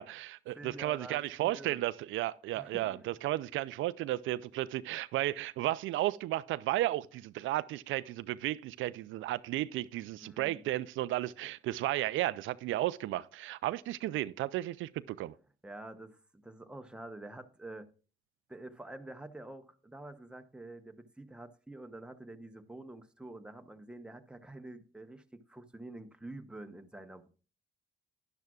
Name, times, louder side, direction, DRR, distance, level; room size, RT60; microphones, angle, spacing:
voice 1, 0.0-15.3, right 15 dB, 80° right, 0.4 m, -34 dB
voice 2, 0.6-1.8 2.5-3.2 10.2-10.6 15.6-17.9 18.5-27.3, right 2 dB, 5° right, 0.9 m, -47 dB
12.0 x 10.5 x 2.4 m
cardioid pair, 90°, 20 cm